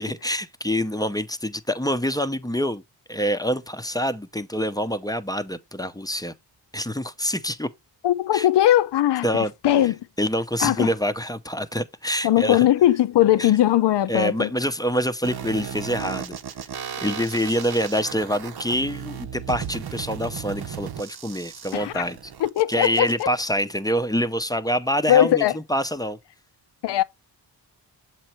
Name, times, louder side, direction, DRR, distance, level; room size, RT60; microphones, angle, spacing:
voice 1, 0.0-2.8 3.1-6.3 6.7-7.7 8.3-8.5 9.2-9.5 9.8-9.9 10.2-12.7 13.4-13.5 14.1-16.4 17.0-22.2 22.7-26.2, equal, 10° left, 0.6 m, -26 dB
voice 2, 8.0-9.3 9.6-10.0 10.6-10.9 12.2-14.5 21.7-22.0 22.4-23.3 25.1-25.6 26.8-27.0, left 12 dB, 70° left, 0.6 m, -19 dB
sound 1, 15.2-23.2, right 8 dB, 60° right, 0.8 m, -35 dB
7.6 x 3.0 x 4.4 m
cardioid pair, 60°, 43 cm